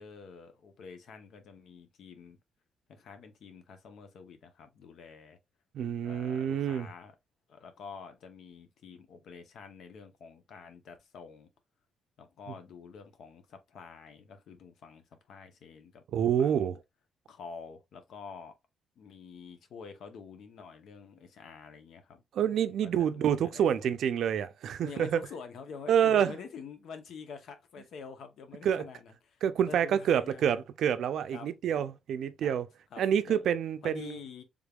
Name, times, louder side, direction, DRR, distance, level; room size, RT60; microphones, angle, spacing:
voice 1, 0.0-2.4 2.9-5.4 6.0-7.1 7.5-11.5 12.2-16.0 16.4-16.7 17.3-18.5 19.0-22.2 22.8-23.9 24.8-29.4 29.7-30.6 31.3-31.5 31.7-31.9 32.4-32.6 32.9-33.5 33.8-34.4, left 6 dB, 70° left, 0.7 m, -47 dB
voice 2, 5.7-6.9 16.1-16.7 22.3-25.2 25.9-26.4 28.6-28.8 29.4-32.7 33.0-34.2, right 9 dB, 70° right, 0.4 m, -27 dB
3.5 x 3.5 x 2.3 m
cardioid pair, 150°, 0 cm